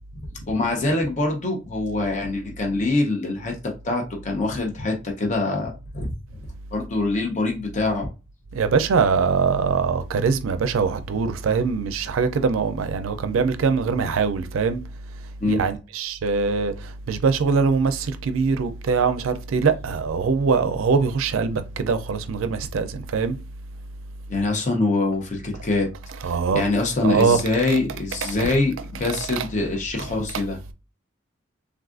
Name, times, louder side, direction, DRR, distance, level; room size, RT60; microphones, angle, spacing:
voice 1, 0.3-6.1 6.7-8.1 15.4-15.6 24.3-25.9 26.3-30.6, left 2 dB, 35° left, 0.6 m, -24 dB
voice 2, 8.5-23.4 26.2-26.7 27.0-27.4 28.2-28.5 29.3-29.4, right 5 dB, 85° right, 0.4 m, -23 dB
3.5 x 2.4 x 2.4 m
head